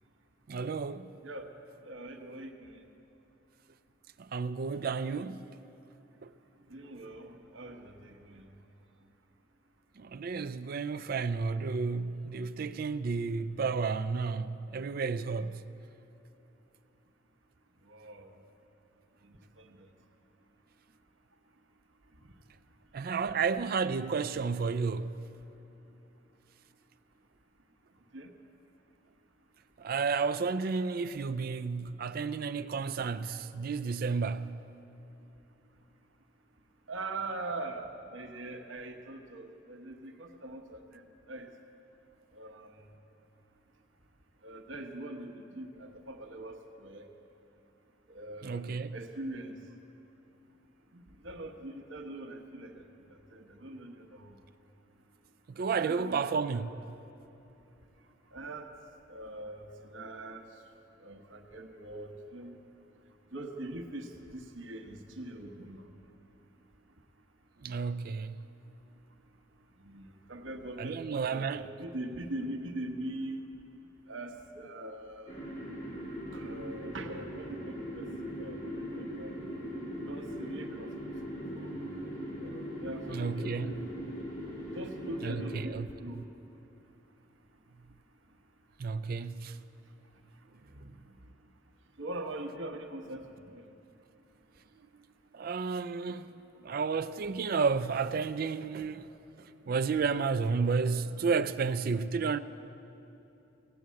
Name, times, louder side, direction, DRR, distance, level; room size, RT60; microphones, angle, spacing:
voice 1, 0.5-1.1 4.2-5.5 6.2-6.3 10.0-15.6 22.9-25.1 29.8-34.6 48.4-48.9 55.6-56.7 67.6-68.3 70.8-71.7 83.1-83.8 85.2-85.9 88.8-89.6 95.3-96.3 96.6-99.1 99.7-102.4, right 5 dB, 50° right, 0.4 m, -32 dB
voice 2, 1.8-2.8 6.7-8.4 17.9-18.4 19.2-19.9 22.2-22.3 28.1-28.3 36.9-41.5 42.3-42.8 44.4-47.1 48.1-49.6 50.9-54.4 55.8-56.6 58.3-58.7 59.1-60.4 61.0-62.6 63.3-65.9 69.8-73.5 74.1-75.5 76.3-78.1 78.4-79.4 80.1-80.9 81.6-81.8 82.4-83.8 84.7-86.3 90.6-90.9 92.0-93.3 93.5-93.6, right 2 dB, 85° right, 1.0 m, -42 dB
sound 1, 75.3-85.6, equal, 35° left, 2.8 m, -40 dB
17.0 x 8.2 x 7.6 m
head